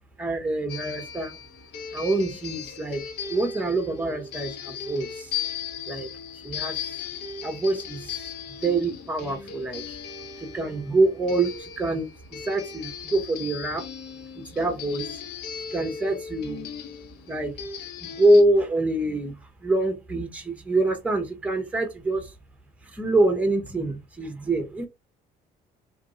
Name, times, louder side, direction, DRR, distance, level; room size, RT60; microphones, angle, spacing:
voice 1, 0.2-1.4 1.9-3.0 3.3-5.3 5.9-6.1 6.4-6.8 7.4-8.0 8.6-9.8 10.4-12.1 12.5-13.9 14.5-15.0 15.7-16.7 17.3-17.5 18.0-19.3 19.6-22.3 22.9-24.9, right 2 dB, 10° right, 0.9 m, -25 dB
sound 1, 0.7-18.4, left 7 dB, 80° left, 0.8 m, -37 dB
3.1 x 2.6 x 3.7 m
cardioid pair, 110°, 17 cm